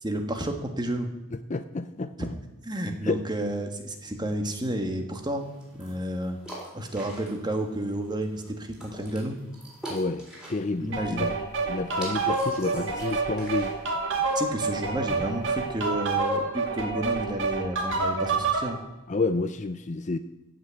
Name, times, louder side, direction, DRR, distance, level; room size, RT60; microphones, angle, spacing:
voice 1, 0.0-1.1 2.6-5.5 5.8-6.4 6.7-9.4 10.8-11.3 14.3-18.8, right 1 dB, 20° right, 4 dB, 1.5 m, -31 dB
voice 2, 1.3-2.3 3.0-3.2 9.9-11.3 11.7-13.7 19.1-20.2, left 3 dB, 35° left, 11 dB, 0.5 m, -30 dB
sound 1, 5.4-15.9, right 1 dB, 5° right, 4.1 m, -46 dB
sound 2, 10.9-18.7, right 3 dB, 60° right, 2.3 m, -28 dB
15.0 x 6.0 x 8.1 m, 1.0 s
head